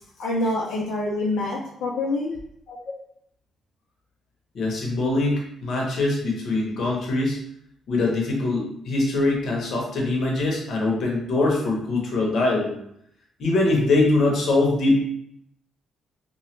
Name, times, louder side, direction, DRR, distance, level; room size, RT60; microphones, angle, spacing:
voice 1, 0.2-2.3, left 2 dB, 85° left, -6 dB, 0.6 m, -26 dB
voice 2, 4.5-7.4 7.9-12.7 13.4-15.0, left 2 dB, 60° left, -1 dB, 0.9 m, -23 dB
2.9 x 2.2 x 3.2 m, 0.72 s
cardioid pair, 90°, 0 cm